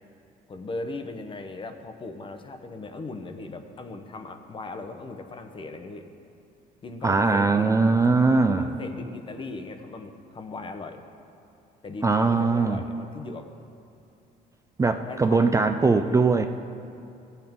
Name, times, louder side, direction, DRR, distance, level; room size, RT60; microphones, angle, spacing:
voice 1, 0.5-6.1 6.8-7.9 8.3-11.0 11.8-13.5 15.0-16.3, left 3 dB, 30° left, 7 dB, 0.8 m, -38 dB
voice 2, 7.0-8.7 12.0-12.8 14.8-16.4, right 3 dB, 20° right, 7 dB, 0.4 m, -21 dB
15.0 x 8.0 x 3.6 m, 2.6 s
cardioid pair, 110°, 17 cm